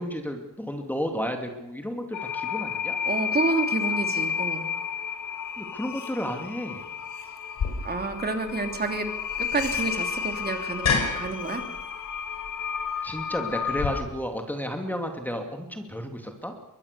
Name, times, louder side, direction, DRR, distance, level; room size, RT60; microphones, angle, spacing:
voice 1, 0.0-3.0 5.6-6.8 13.0-16.5, equal, 5° left, 4 dB, 2.7 m, -32 dB
sound 1, 2.1-14.0, left 7 dB, 75° left, 2.2 m, -32 dB
voice 2, 3.0-4.7 7.8-9.1 9.4-11.6, right 3 dB, 30° right, 5 dB, 3.2 m, -29 dB
sound 2, 7.6-13.9, left 5 dB, 60° left, 5.6 m, -32 dB
23.0 x 20.5 x 6.9 m, 0.91 s
cardioid pair, 95°, 31 cm